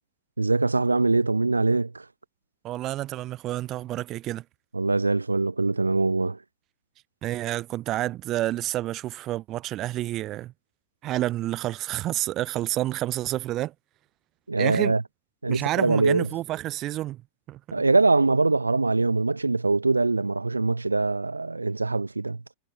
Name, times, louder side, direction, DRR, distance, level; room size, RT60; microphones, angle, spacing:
voice 1, 0.4-2.1 4.7-6.4 14.5-15.0 15.4-16.3 17.7-22.4, right 3 dB, 80° right, 1.9 m, -23 dB
voice 2, 2.6-4.4 7.2-10.5 11.0-13.7 14.6-15.0 15.5-17.2 17.5-17.6, right 15 dB, 35° right, 1.4 m, -29 dB
figure-of-eight pair, 90°, 0 cm